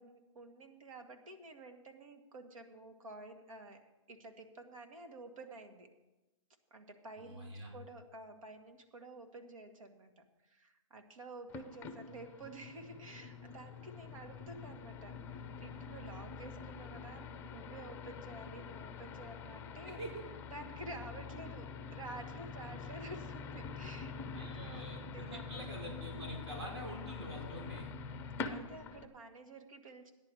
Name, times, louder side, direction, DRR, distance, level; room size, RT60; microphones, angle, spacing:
voice 1, 0.0-5.9 6.7-20.0 20.5-25.8 26.4-26.7 28.4-30.1, right 2 dB, 85° right, 5 dB, 2.0 m, -51 dB
voice 2, 7.2-7.7 19.9-20.2 24.3-27.9, right 1 dB, 55° right, 0 dB, 4.0 m, -45 dB
sound 1, 11.5-29.1, left 5 dB, 15° left, 0.6 m, -46 dB
14.5 x 10.0 x 4.8 m, 1.0 s
hypercardioid pair, 155°, 17 cm